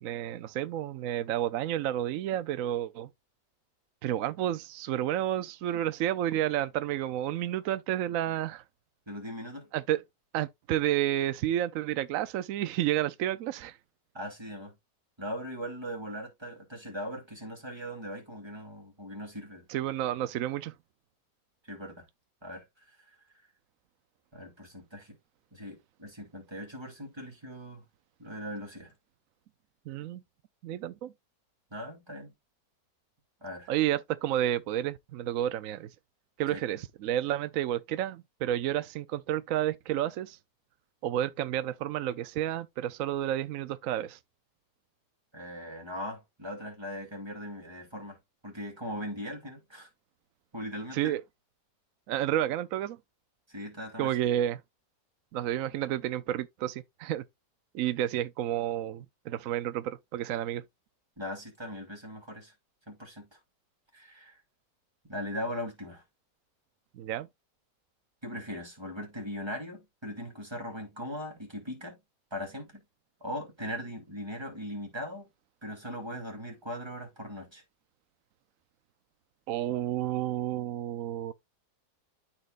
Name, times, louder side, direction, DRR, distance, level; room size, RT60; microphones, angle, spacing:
voice 1, 0.0-3.1 4.0-8.6 9.7-10.0 10.3-13.8 19.7-20.7 29.9-30.2 30.6-31.1 33.7-35.9 36.4-40.4 41.0-44.2 50.9-51.2 52.1-53.0 54.0-54.6 55.3-57.2 57.7-60.6 67.0-67.3 79.5-81.3, right 12 dB, 70° right, 0.8 m, -30 dB
voice 2, 9.1-9.7 14.1-14.7 15.2-19.7 21.7-22.0 22.4-22.7 24.3-25.2 25.5-27.8 28.2-28.9 31.7-32.3 33.4-33.7 36.5-36.6 45.3-48.2 48.4-49.9 50.5-51.1 53.5-54.1 61.2-62.5 62.9-63.4 63.9-64.4 65.1-66.0 68.2-72.0 72.3-72.8 73.2-75.3 75.6-77.6, equal, 15° right, 2.7 m, -39 dB
12.5 x 4.4 x 2.4 m
omnidirectional pair, 1.9 m